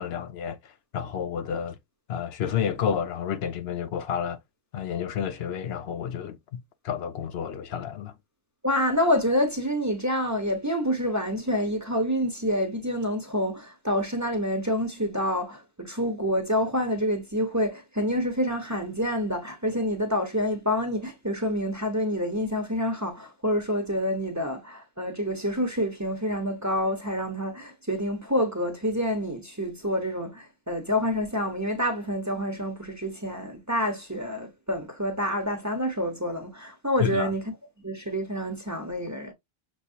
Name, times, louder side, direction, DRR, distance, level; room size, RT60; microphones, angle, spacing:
voice 1, 0.0-1.8 2.1-4.4 4.7-8.1 37.0-37.3, left 8 dB, 75° left, 0.8 m, -30 dB
voice 2, 8.6-37.4 37.8-39.3, equal, 20° right, 0.8 m, -27 dB
6.2 x 2.6 x 2.7 m
omnidirectional pair, 1.1 m